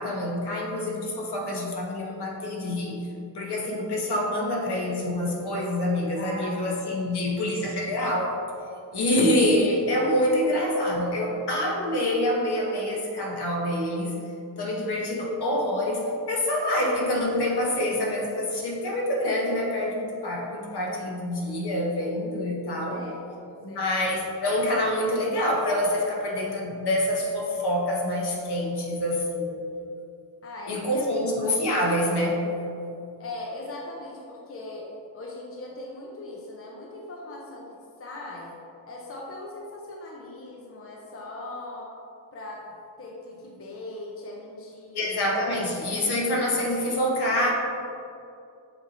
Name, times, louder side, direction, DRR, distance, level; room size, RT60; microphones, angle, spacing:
voice 1, 0.0-3.0 3.3-8.3 8.9-14.1 14.6-23.0 23.6-29.6 30.7-32.4 44.9-47.5, left 1 dB, 60° left, -2 dB, 1.3 m, -26 dB
voice 2, 6.2-6.6 6.9-7.6 22.9-24.2 30.4-31.3 33.2-38.6 38.9-41.9 42.3-42.6 43.0-45.1 45.5-45.6, left 2 dB, 30° left, -2 dB, 0.7 m, -40 dB
7.8 x 3.0 x 4.2 m, 2.6 s
cardioid pair, 95°, 44 cm